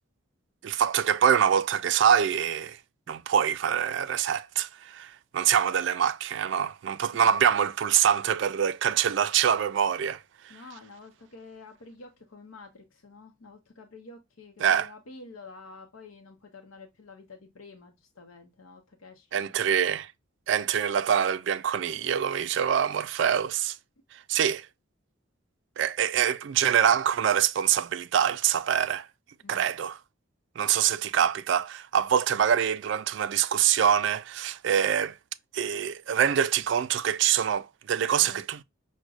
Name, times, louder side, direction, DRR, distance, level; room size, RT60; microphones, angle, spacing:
voice 1, 0.6-2.8 3.1-10.5 14.6-14.9 19.3-20.1 20.5-23.8 24.3-24.7 25.8-29.1 29.5-30.0 30.6-35.2 35.5-38.6, right 8 dB, 60° right, 0.3 m, -25 dB
voice 2, 10.5-19.7 29.4-29.6 38.2-38.4, left 3 dB, 90° left, 0.7 m, -49 dB
6.2 x 2.1 x 2.4 m
head